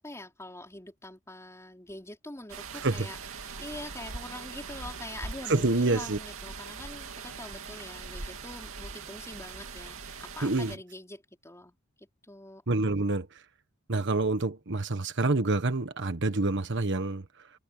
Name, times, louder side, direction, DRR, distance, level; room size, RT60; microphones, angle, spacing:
voice 1, 0.0-12.6, left 1 dB, 15° left, 4.6 m, -44 dB
sound 1, 2.5-10.8, right 4 dB, 70° right, 2.5 m, -41 dB
voice 2, 2.7-3.1 5.5-6.2 10.4-10.7 12.7-13.3 13.9-17.2, right 2 dB, 55° right, 1.4 m, -27 dB
head